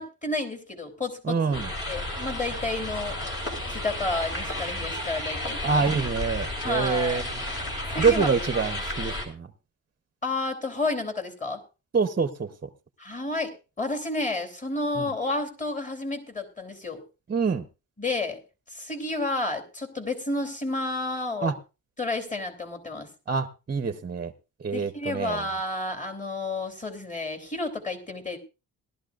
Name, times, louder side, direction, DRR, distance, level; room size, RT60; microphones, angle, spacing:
voice 1, 0.0-1.5 1.9-3.2 3.7-5.8 6.6-7.2 7.9-8.8 10.2-11.6 13.0-17.0 18.0-18.4 18.7-21.5 22.0-23.1 24.7-28.4, left 2 dB, 20° left, 3.0 m, -31 dB
voice 2, 1.3-1.7 5.6-7.2 8.0-9.5 11.9-12.5 15.0-15.1 17.3-17.6 21.4-21.5 23.3-24.3 24.6-25.4, right 5 dB, 25° right, 0.8 m, -26 dB
sound 1, 1.5-9.2, left 1 dB, 40° left, 4.2 m, -32 dB
18.5 x 12.5 x 2.5 m
cardioid pair, 105°, 35 cm